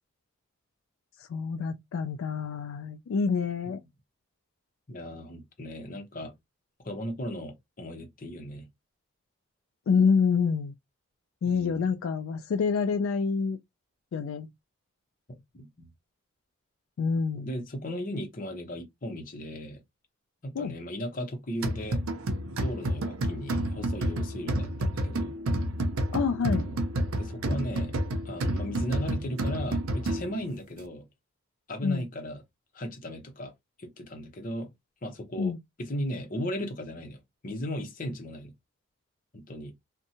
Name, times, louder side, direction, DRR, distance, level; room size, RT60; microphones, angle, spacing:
voice 1, 1.3-3.8 9.9-10.7 11.4-13.6 14.1-14.5 17.0-17.6 20.6-20.7 26.1-26.7 31.8-32.0 35.4-35.6, left 5 dB, 75° left, 0.3 m, -27 dB
voice 2, 4.9-6.3 6.8-8.6 11.4-11.9 15.5-15.9 17.3-19.8 20.4-22.0 22.6-25.3 26.6-26.8 27.2-27.9 28.2-31.1 31.7-32.4 32.7-33.5 33.8-34.7 35.0-38.5 39.3-39.7, equal, 40° left, 0.7 m, -36 dB
sound 1, 21.6-30.5, right 1 dB, 85° right, 0.5 m, -30 dB
2.6 x 2.1 x 2.8 m
head